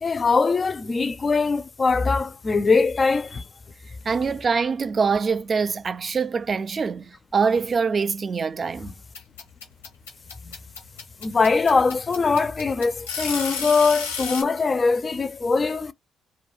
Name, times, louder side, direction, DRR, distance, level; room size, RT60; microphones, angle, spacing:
voice 1, 0.0-3.4 10.4-10.5 11.2-15.9, left 4 dB, 35° left, 0.4 m, -22 dB
voice 2, 4.0-8.9, right 5 dB, 40° right, 0.3 m, -24 dB
sound 1, 9.1-14.4, left 6 dB, 90° left, 0.7 m, -31 dB
2.2 x 2.1 x 3.0 m
hypercardioid pair, 45°, 0 cm